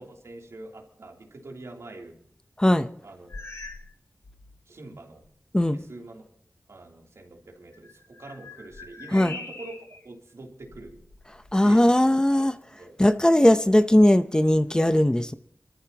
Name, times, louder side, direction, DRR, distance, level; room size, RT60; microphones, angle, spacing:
voice 1, 0.0-2.2 3.0-3.3 4.7-5.2 5.7-6.2 6.7-11.0 11.6-12.5 12.8-13.0, right 2 dB, 85° right, 3.1 m, -44 dB
voice 2, 2.6-2.9 5.5-5.8 9.1-9.3 11.5-12.5 13.0-15.3, left 1 dB, 15° left, 0.7 m, -19 dB
sound 1, 3.3-3.9 4.2-4.6 5.2-5.3 7.7-10.1 10.6-11.6, left 3 dB, 85° left, 2.2 m, -43 dB
28.0 x 13.5 x 2.9 m
wide cardioid pair, 80°, 5 cm